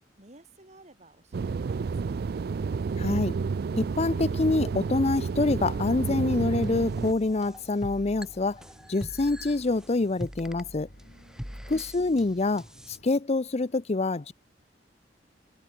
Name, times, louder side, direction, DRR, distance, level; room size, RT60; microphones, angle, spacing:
voice 1, 0.2-2.3 11.0-11.6, right 2 dB, 40° right, 6.7 m, -55 dB
sound 1, 1.3-7.1, right 5 dB, 60° right, 0.4 m, -30 dB
sound 2, 2.7-13.1, left 1 dB, 65° left, 2.6 m, -57 dB
voice 2, 3.0-3.3 3.7-8.6 8.9-10.9 11.7-14.3, left 3 dB, 40° left, 0.6 m, -26 dB
sound 3, 6.6-13.0, equal, 5° right, 1.9 m, -43 dB
head